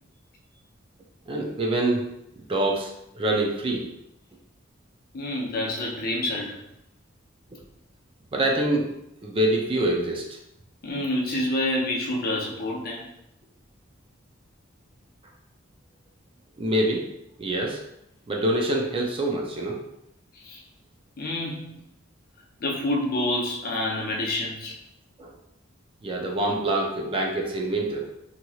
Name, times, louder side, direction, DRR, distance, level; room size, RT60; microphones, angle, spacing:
voice 1, 1.3-2.0 2.5-3.9 8.3-8.9 9.2-10.2 16.6-17.1 17.4-17.8 18.3-19.8 25.2-25.3 26.0-28.1, right 1 dB, 25° right, 0 dB, 0.4 m, -25 dB
voice 2, 5.1-6.6 10.8-13.1 20.3-20.6 21.2-21.7 22.6-24.8, left 1 dB, 50° left, -1 dB, 0.6 m, -28 dB
3.0 x 2.7 x 2.3 m, 0.82 s
head